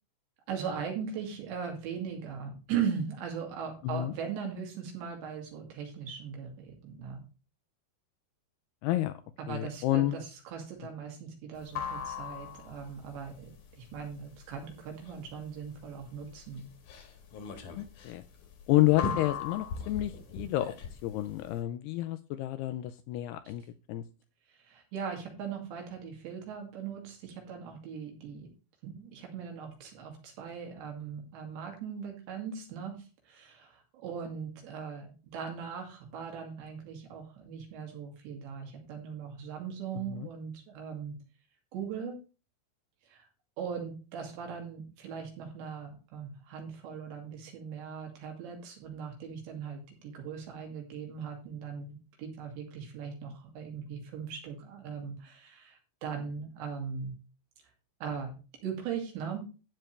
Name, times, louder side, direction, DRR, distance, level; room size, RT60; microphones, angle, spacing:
voice 1, 0.5-7.2 9.4-16.7 24.5-28.5 28.8-33.0 33.3-41.2 41.7-42.2 43.1-43.3 43.6-57.1 58.0-58.4 58.6-59.5, right 7 dB, 75° right, 2 dB, 4.7 m, -39 dB
voice 2, 3.8-4.1 8.8-9.1 9.5-10.2 17.8-18.2 18.7-24.0 39.9-40.3, left 16 dB, 80° left, 11 dB, 2.4 m, -30 dB
sound 1, 11.6-21.6, left 6 dB, 60° left, 2.5 m, -39 dB
12.5 x 9.1 x 3.3 m, 0.33 s
omnidirectional pair, 5.1 m